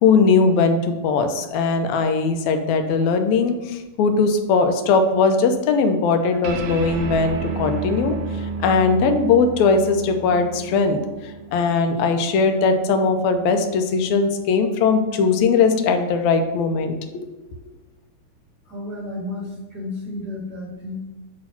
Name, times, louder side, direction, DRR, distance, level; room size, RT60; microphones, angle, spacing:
voice 1, 0.0-8.2 8.6-11.0 11.5-16.9, left 4 dB, 75° left, 6 dB, 1.9 m, -19 dB
sound 1, 6.4-13.2, right 4 dB, 80° right, 2.3 m, -32 dB
voice 2, 18.6-21.0, left 2 dB, 30° right, -6 dB, 2.0 m, -32 dB
8.7 x 3.1 x 5.8 m, 1.1 s
omnidirectional pair, 3.6 m